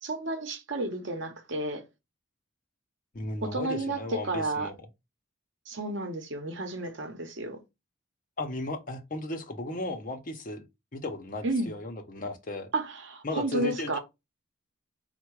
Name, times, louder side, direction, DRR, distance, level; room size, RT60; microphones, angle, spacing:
voice 1, 0.0-1.8 3.4-4.7 5.7-7.6 11.4-11.7 12.7-14.0, right 2 dB, 60° right, 0.8 m, -32 dB
voice 2, 3.1-4.8 8.4-10.6 10.9-12.7 13.2-14.0, left 2 dB, 40° left, 0.7 m, -35 dB
4.6 x 2.2 x 4.6 m
head